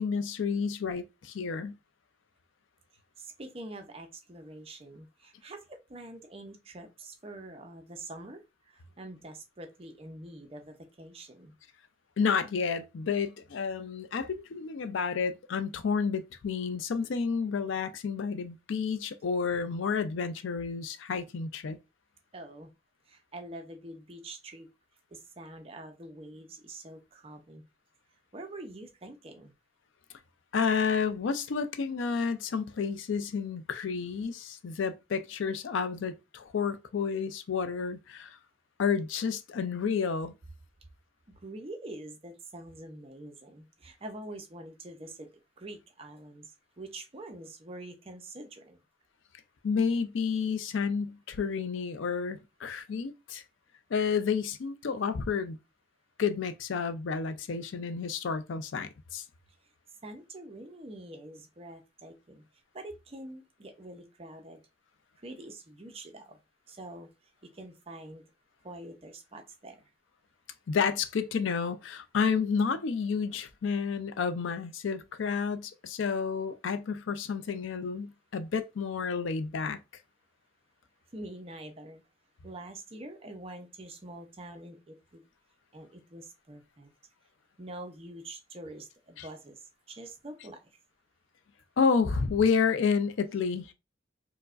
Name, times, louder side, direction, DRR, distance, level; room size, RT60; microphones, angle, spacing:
voice 1, 0.0-1.8 12.2-21.8 30.5-38.4 38.8-40.3 49.6-53.4 53.9-55.6 56.2-59.2 70.7-79.8 89.2-89.3 91.8-93.7, left 5 dB, 80° left, 0.4 m, -30 dB
voice 2, 3.2-8.4 8.7-11.5 22.3-22.7 23.1-24.7 25.1-27.6 28.3-29.5 41.4-45.3 45.6-46.5 46.8-48.8 60.0-62.4 62.7-64.6 65.2-66.4 66.7-67.1 67.5-68.3 68.6-69.8 81.1-82.0 82.4-85.2 85.7-86.9 87.6-89.6 89.9-90.6, right 1 dB, 30° right, 0.5 m, -45 dB
4.5 x 2.1 x 2.4 m
head